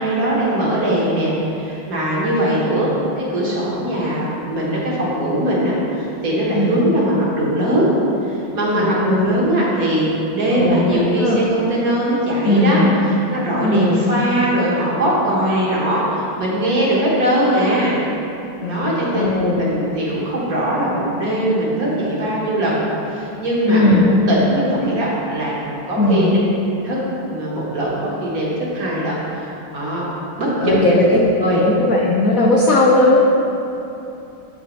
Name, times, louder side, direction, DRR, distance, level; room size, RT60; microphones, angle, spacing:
voice 1, 0.0-2.9 3.2-7.9 8.3-12.8 13.3-18.0 18.7-26.4 26.8-27.0 27.3-30.1 30.4-30.9 31.4-31.7, right 1 dB, 50° right, -6 dB, 1.6 m, -20 dB
voice 2, 8.7-9.4 10.5-11.4 12.4-12.9 13.6-14.0 18.6-19.5 23.7-24.0 25.9-26.3 30.6-31.1 31.5-33.3, left 2 dB, 85° left, -3 dB, 0.7 m, -17 dB
12.0 x 4.1 x 3.0 m, 2.8 s
omnidirectional pair, 2.2 m